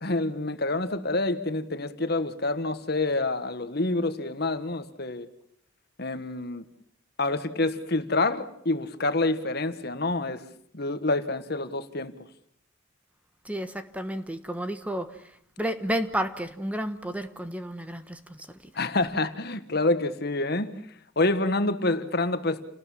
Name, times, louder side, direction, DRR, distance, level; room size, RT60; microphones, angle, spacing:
voice 1, 0.0-5.3 6.0-6.6 7.2-10.5 10.7-12.1 18.7-20.8 21.1-22.6, left 2 dB, 55° left, 1.6 m, -27 dB
voice 2, 13.5-15.1 15.6-18.2, right 1 dB, 5° right, 1.3 m, -31 dB
29.5 x 19.0 x 7.4 m
head